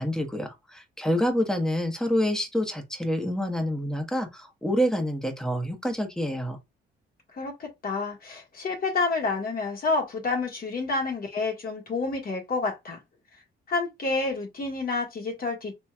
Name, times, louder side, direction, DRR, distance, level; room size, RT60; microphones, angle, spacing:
voice 1, 0.0-6.6, equal, 5° left, 1.1 m, -27 dB
voice 2, 7.3-13.0 13.7-15.7, left 3 dB, 50° left, 1.5 m, -29 dB
4.3 x 3.1 x 2.3 m
cardioid pair, 90°, 20 cm